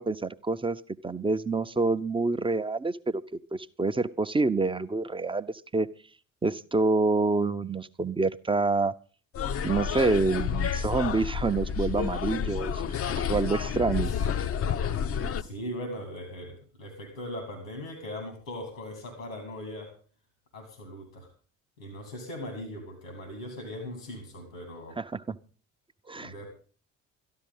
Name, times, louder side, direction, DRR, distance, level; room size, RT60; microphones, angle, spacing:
voice 1, 0.0-5.9 6.4-8.9 9.6-14.1 15.2-15.3 25.0-25.4 26.1-26.3, right 3 dB, 15° right, 12 dB, 0.7 m, -27 dB
sound 1, 9.3-15.4, left 7 dB, 35° left, 0.8 m, -30 dB
voice 2, 13.9-14.8 15.4-19.9 20.5-21.3 21.8-25.0 26.2-26.5, left 1 dB, 85° left, 6 dB, 2.8 m, -40 dB
13.5 x 11.5 x 5.5 m, 0.39 s
figure-of-eight pair, 50°, 39 cm